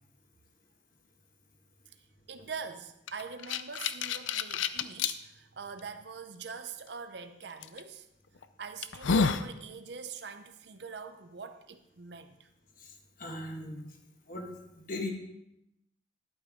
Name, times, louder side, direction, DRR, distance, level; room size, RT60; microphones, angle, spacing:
voice 1, 1.9-8.1 8.6-12.5, right 5 dB, 65° right, 8 dB, 0.6 m, -44 dB
sound 1, 3.1-5.1 5.8-5.9 7.6-7.8 8.4-8.5 8.8-9.5, left 5 dB, 85° left, 0.5 m, -29 dB
voice 2, 12.8-13.9 14.3-15.1, left 1 dB, 45° left, 2 dB, 1.5 m, -39 dB
11.5 x 8.8 x 3.7 m, 0.84 s
head